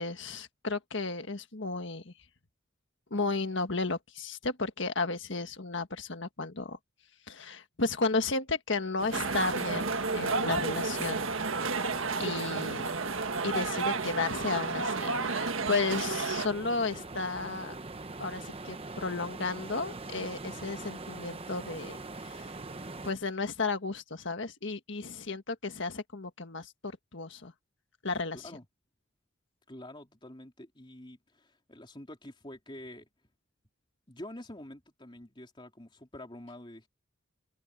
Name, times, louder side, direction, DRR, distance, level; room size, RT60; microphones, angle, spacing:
voice 1, 0.0-2.1 3.1-6.8 7.3-11.2 12.2-13.0 13.4-17.7 18.2-22.5 23.0-27.5 28.0-28.5, left 3 dB, 55° left, 1.7 m, -33 dB
sound 1, 9.0-23.1, right 3 dB, 25° right, 0.9 m, -43 dB
sound 2, 9.1-16.5, right 4 dB, 70° right, 1.6 m, -31 dB
voice 2, 12.2-12.5 28.3-28.6 29.7-33.1 34.1-36.9, left 1 dB, 20° left, 3.6 m, -47 dB
open air
head